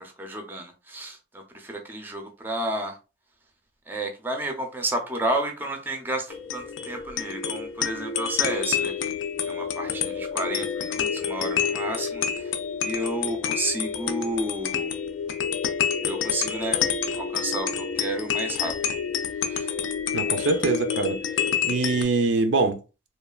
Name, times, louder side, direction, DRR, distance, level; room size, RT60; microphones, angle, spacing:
voice 1, 0.0-3.0 3.9-9.1 9.5-12.5 12.8-14.9 16.0-16.8 17.1-18.7 19.4-19.7 20.4-20.5, right 1 dB, 10° right, 0.4 m, -31 dB
sound 1, 6.3-22.0, left 7 dB, 80° left, 0.4 m, -28 dB
voice 2, 20.1-21.2 21.6-22.8, right 3 dB, 70° right, 0.5 m, -23 dB
3.1 x 2.2 x 2.3 m
head